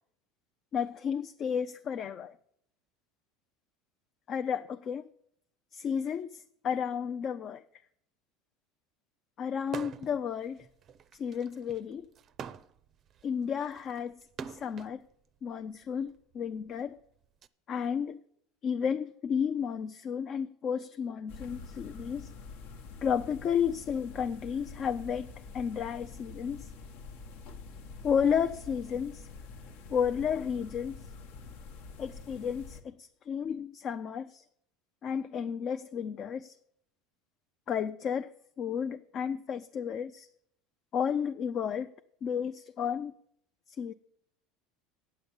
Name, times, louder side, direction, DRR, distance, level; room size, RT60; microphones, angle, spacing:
voice 1, 0.7-2.3 4.3-5.1 5.7-7.6 9.4-10.7 11.1-12.1 13.2-14.2 14.5-15.0 15.4-17.0 17.7-18.2 18.6-22.3 23.0-26.7 28.0-29.3 29.9-31.0 32.0-34.4 35.0-36.6 37.7-38.3 38.6-40.3 40.9-41.9 42.2-43.1 43.8-43.9, left 7 dB, 40° left, 0.4 m, -32 dB
sound 1, 9.6-10.2 10.6-15.0 15.8-17.5, right 7 dB, 35° right, 0.5 m, -44 dB
sound 2, 21.3-32.8, left 4 dB, 70° left, 1.0 m, -46 dB
9.0 x 6.7 x 8.7 m
supercardioid pair, 130°, 0 cm